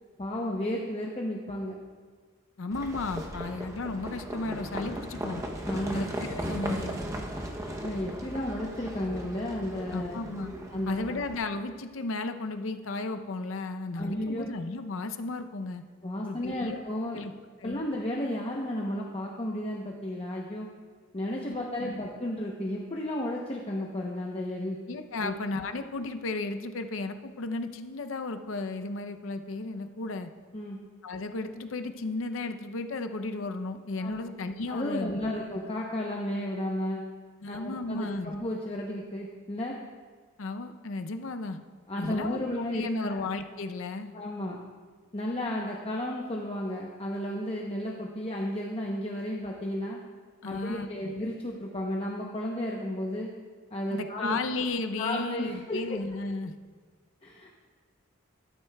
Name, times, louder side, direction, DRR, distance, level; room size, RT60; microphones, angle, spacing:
voice 1, 0.2-1.8 5.7-6.1 7.8-10.2 10.7-11.2 14.0-14.5 16.0-17.2 17.6-20.7 21.1-24.8 25.2-25.4 30.5-30.8 34.0-34.3 34.7-37.0 37.5-39.7 41.9-43.2 44.1-44.6 45.1-50.0 50.4-53.3 53.7-54.4 55.0-56.0 57.2-57.7, left 1 dB, 30° left, -1 dB, 0.7 m, -33 dB
voice 2, 2.6-5.4 5.9-7.0 9.9-10.5 10.9-15.8 16.2-16.8 17.1-17.3 17.6-17.8 21.5-21.6 21.8-21.9 24.9-30.3 31.0-35.2 37.4-38.3 40.4-41.6 42.0-44.1 50.4-50.9 53.9-56.5, left 3 dB, 70° left, 8 dB, 0.6 m, -34 dB
Livestock farm animals working animals, 2.7-11.4, right 1 dB, 15° right, 0.7 m, -37 dB
13.0 x 12.0 x 2.3 m, 1.5 s
head